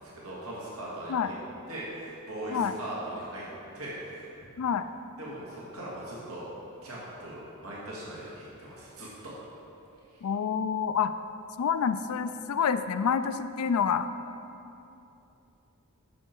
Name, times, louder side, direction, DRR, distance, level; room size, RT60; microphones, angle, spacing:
voice 1, 0.0-1.3 1.7-3.5 3.7-4.3 5.2-6.5 6.8-9.3, right 1 dB, 70° right, -6 dB, 1.9 m, -39 dB
voice 2, 10.2-11.1 11.6-14.1, left 7 dB, 75° left, 11 dB, 0.4 m, -27 dB
10.5 x 6.5 x 4.5 m, 2.8 s
head